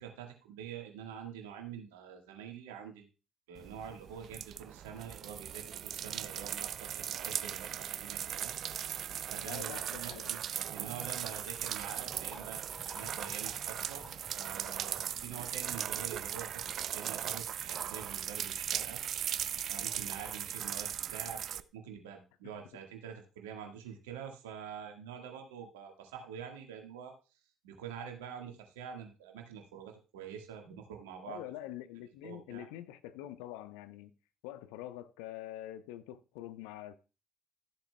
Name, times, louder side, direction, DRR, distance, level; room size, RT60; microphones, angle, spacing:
voice 1, 0.0-3.1 3.5-8.5 9.3-14.1 14.3-19.0 19.7-27.1 27.6-31.4 32.2-32.7, right 8 dB, 80° right, 1.6 m, -46 dB
sound 1, 3.6-21.6, right 10 dB, 55° right, 0.4 m, -38 dB
sound 2, 7.6-7.7 8.0-8.3 11.0-18.9 19.1-19.6, left 1 dB, 25° left, 4.5 m, -56 dB
voice 2, 9.4-10.3 15.1-15.4 22.4-22.5 31.3-34.1 34.4-36.9, left 13 dB, 75° left, 0.6 m, -45 dB
13.0 x 7.5 x 2.2 m
hypercardioid pair, 50°, 0 cm